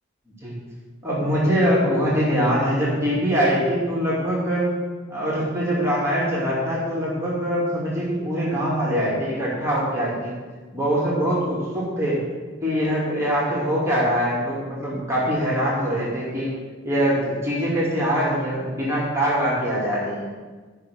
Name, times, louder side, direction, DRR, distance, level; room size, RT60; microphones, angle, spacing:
voice 1, 1.0-4.7 5.1-10.3 10.7-12.2 12.6-16.5 16.8-20.3, equal, 15° right, -7 dB, 2.6 m, -23 dB
12.0 x 5.7 x 6.4 m, 1.3 s
head